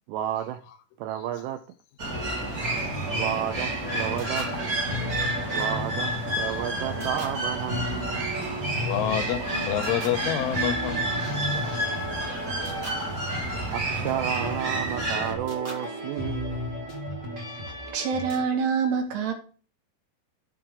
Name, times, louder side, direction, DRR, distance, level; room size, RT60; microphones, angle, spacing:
voice 1, 0.1-0.6 1.0-1.6 2.5-2.6 3.1-4.5 5.5-8.4 11.9-12.0 13.7-16.9, right 11 dB, 85° right, 2.5 m, -32 dB
sound 1, 2.0-15.3, right 2 dB, 45° right, 1.1 m, -30 dB
sound 2, 2.1-18.4, left 1 dB, 25° right, 1.7 m, -34 dB
voice 2, 8.9-11.9, left 11 dB, 90° left, 3.5 m, -29 dB
voice 3, 17.7-19.3, right 6 dB, 65° right, 3.7 m, -26 dB
14.0 x 6.0 x 3.8 m
omnidirectional pair, 5.5 m